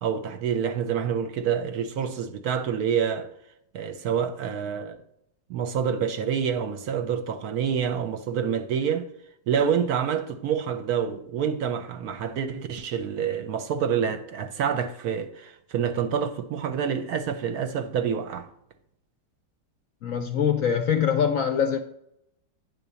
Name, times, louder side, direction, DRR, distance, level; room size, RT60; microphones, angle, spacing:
voice 1, 0.0-3.3 3.7-5.0 5.5-9.1 9.5-18.5, right 7 dB, 70° right, 1.0 m, -27 dB
voice 2, 20.0-21.8, left 8 dB, 70° left, 0.8 m, -23 dB
9.3 x 4.0 x 6.8 m
omnidirectional pair, 1.9 m